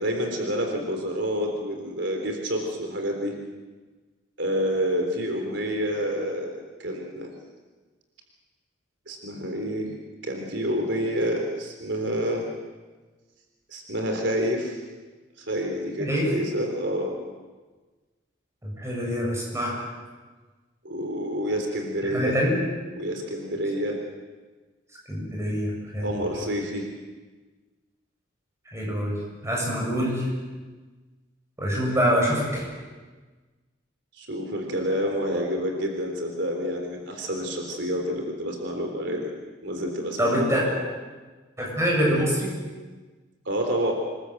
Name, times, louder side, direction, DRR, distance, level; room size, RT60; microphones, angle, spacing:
voice 1, 0.0-3.4 4.4-7.3 9.1-9.9 10.2-12.5 13.7-14.8 15.4-17.2 20.8-22.4 23.0-24.0 26.0-26.9 34.1-39.3 39.6-40.8 43.5-43.9, equal, 70° right, 2 dB, 3.7 m, -28 dB
voice 2, 16.0-16.3 18.6-19.8 22.0-22.6 25.1-26.2 28.7-29.2 29.4-30.3 31.6-32.6 40.2-40.6 41.6-42.5, equal, 15° right, -2 dB, 7.8 m, -25 dB
26.5 x 21.5 x 7.9 m, 1.3 s
head